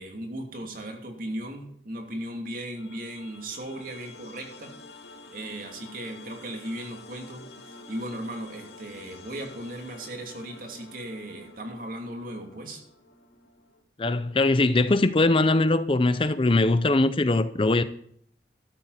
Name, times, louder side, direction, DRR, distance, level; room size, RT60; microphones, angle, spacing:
voice 1, 0.0-4.7 5.3-12.8, right 1 dB, 50° right, 2.9 m, -37 dB
sound 1, 2.7-13.8, left 2 dB, 65° left, 2.4 m, -48 dB
voice 2, 14.0-17.8, left 2 dB, 30° left, 0.5 m, -21 dB
13.0 x 12.5 x 4.2 m
head